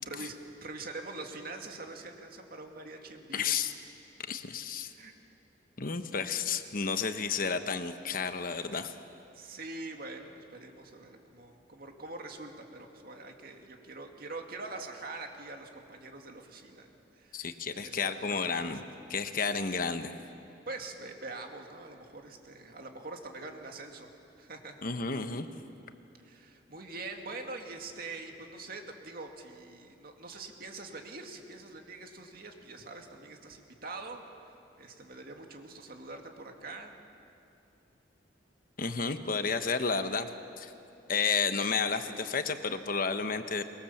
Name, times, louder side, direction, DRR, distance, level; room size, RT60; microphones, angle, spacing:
voice 1, 0.0-3.6 4.9-5.2 9.3-18.8 20.7-24.1 24.4-24.8 26.2-34.2 34.8-37.0, right 3 dB, 55° right, 3 dB, 2.2 m, -44 dB
voice 2, 3.3-3.7 4.3-4.9 5.8-8.9 17.3-18.8 19.1-20.1 24.8-25.5 38.8-40.3 40.6-40.7 41.1-43.6, left 5 dB, 50° left, 9 dB, 1.0 m, -31 dB
23.5 x 22.0 x 7.3 m, 2.7 s
head